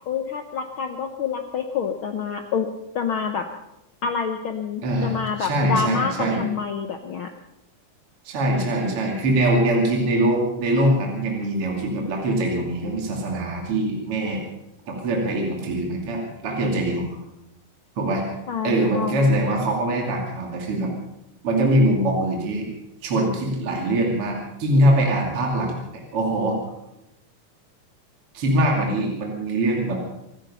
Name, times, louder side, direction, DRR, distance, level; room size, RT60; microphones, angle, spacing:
voice 1, 0.1-2.7 2.9-3.5 4.0-7.3 18.5-19.3, left 6 dB, 70° left, 5 dB, 1.2 m, -27 dB
voice 2, 4.8-6.4 8.2-14.4 14.9-17.1 18.0-18.2 18.6-20.9 21.4-22.7 23.0-25.8 26.1-26.6 28.3-30.0, right 1 dB, 45° right, 0 dB, 3.3 m, -22 dB
26.0 x 10.0 x 5.6 m, 0.88 s
omnidirectional pair, 3.7 m